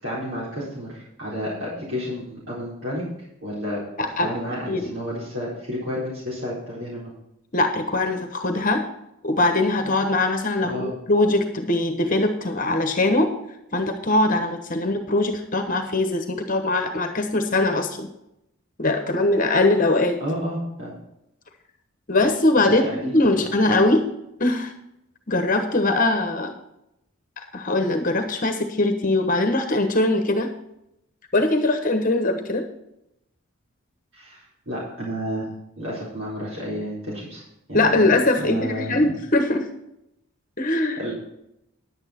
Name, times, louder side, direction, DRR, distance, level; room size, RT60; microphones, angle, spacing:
voice 1, 0.0-3.1 3.4-3.8 4.2-7.1 10.6-11.0 20.2-20.9 22.7-23.7 34.1-35.5 35.8-37.4 37.7-38.1 38.4-39.0 41.0-41.2, equal, 70° right, -6 dB, 4.3 m, -31 dB
voice 2, 4.0-4.3 4.7-4.9 7.5-8.8 9.2-13.3 13.7-18.1 18.8-20.2 22.1-24.0 24.4-24.7 25.3-26.5 27.4-30.5 31.3-32.6 37.7-39.7 40.6-41.0, left 2 dB, 40° left, 6 dB, 1.1 m, -21 dB
10.5 x 9.0 x 4.4 m, 0.83 s
head